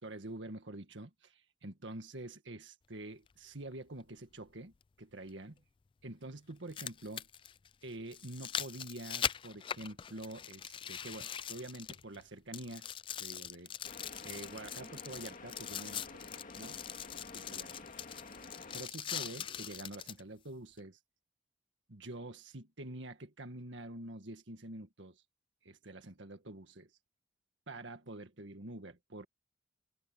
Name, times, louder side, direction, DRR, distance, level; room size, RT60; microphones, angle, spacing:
voice 1, 0.0-5.6 6.0-7.3 7.8-12.9 13.2-13.7 14.2-16.2 16.6-16.8 17.3-17.8 18.7-21.0 21.9-25.2 25.6-26.9 27.7-29.3, right 2 dB, 75° right, 1.8 m, -47 dB
sound 1, 3.3-3.4 5.3-5.4 6.5-12.2 12.5-20.2 20.8-20.9, left 9 dB, 25° left, 0.3 m, -42 dB
sound 2, 13.8-18.9, left 3 dB, 45° left, 2.1 m, -50 dB
head